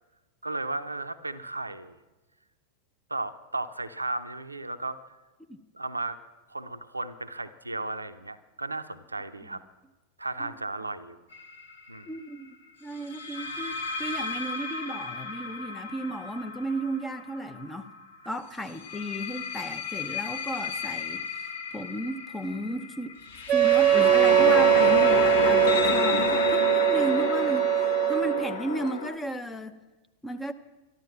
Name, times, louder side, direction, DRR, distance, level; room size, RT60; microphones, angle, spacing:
voice 1, 0.4-2.0 3.1-5.0 5.7-6.2 6.5-9.6 10.2-11.2 11.9-12.1, right 2 dB, 80° right, 10 dB, 0.6 m, -35 dB
sound 1, 11.3-11.6 13.1-17.9 18.7-29.1, left 4 dB, 60° left, 1.4 m, -30 dB
voice 2, 12.1-12.5 12.8-17.9 18.2-23.1 23.5-29.8 30.2-30.5, right 1 dB, 10° left, 9 dB, 0.8 m, -34 dB
Wind instrument woodwind instrument, 23.5-28.5, right 13 dB, 30° right, 0.9 m, -22 dB
13.0 x 12.0 x 7.3 m, 1.1 s
figure-of-eight pair, 90°, 0 cm